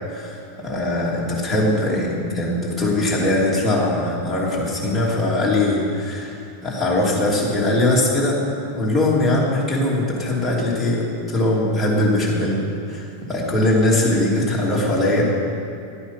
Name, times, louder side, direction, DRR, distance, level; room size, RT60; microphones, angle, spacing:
voice 1, 0.1-8.4 8.7-12.6 12.9-15.2, left 1 dB, 5° left, -6 dB, 2.8 m, -21 dB
12.5 x 8.7 x 5.9 m, 2.6 s
supercardioid pair, 145°, 0 cm